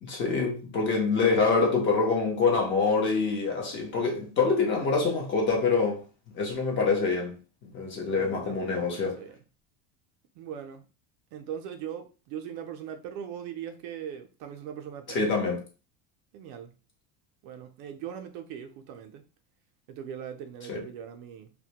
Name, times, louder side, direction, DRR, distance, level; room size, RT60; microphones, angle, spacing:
voice 1, 0.0-6.0 6.3-7.3 7.7-9.2 15.1-15.6 20.7-20.8, left 4 dB, 30° left, 0.6 m, -25 dB
voice 2, 8.0-9.4 10.4-10.8 11.3-15.2 16.3-16.8 17.4-19.2 19.9-21.5, right 9 dB, 60° right, 0.4 m, -40 dB
2.1 x 2.1 x 2.8 m
cardioid pair, 160°, 37 cm